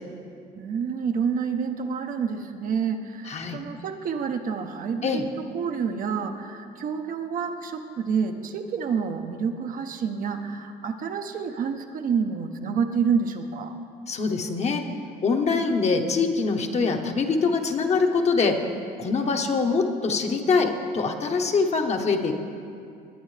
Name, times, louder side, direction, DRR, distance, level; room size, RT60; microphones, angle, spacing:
voice 1, 0.6-5.2 5.5-13.7, right 6 dB, 55° right, 6 dB, 0.8 m, -28 dB
voice 2, 3.3-3.6 5.0-5.2 14.1-14.8 15.2-18.6 19.0-22.3, left 4 dB, 40° left, 4 dB, 1.0 m, -24 dB
19.5 x 9.0 x 3.3 m, 2.5 s
cardioid pair, 110°, 17 cm